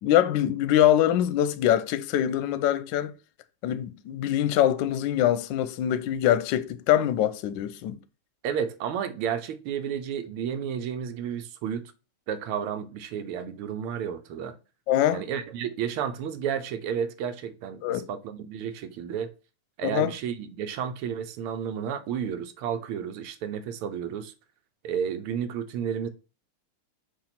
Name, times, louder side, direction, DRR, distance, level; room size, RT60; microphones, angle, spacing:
voice 1, 0.0-3.1 3.6-8.0 14.9-15.2 17.8-18.0 19.8-20.1, left 11 dB, 70° left, 1.2 m, -24 dB
voice 2, 8.4-11.9 12.3-14.5 15.1-19.3 19.8-24.3 24.8-26.1, right 8 dB, 90° right, 1.6 m, -32 dB
6.9 x 2.9 x 5.8 m
omnidirectional pair, 2.4 m